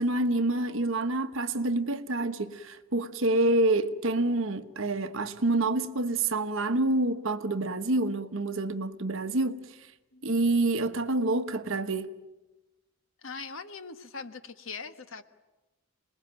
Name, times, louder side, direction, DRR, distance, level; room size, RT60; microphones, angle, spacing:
voice 1, 0.0-9.6 10.2-12.1, right 2 dB, 60° right, 1.1 m, -27 dB
voice 2, 13.2-15.2, left 4 dB, 60° left, 1.3 m, -41 dB
26.5 x 20.5 x 9.0 m
head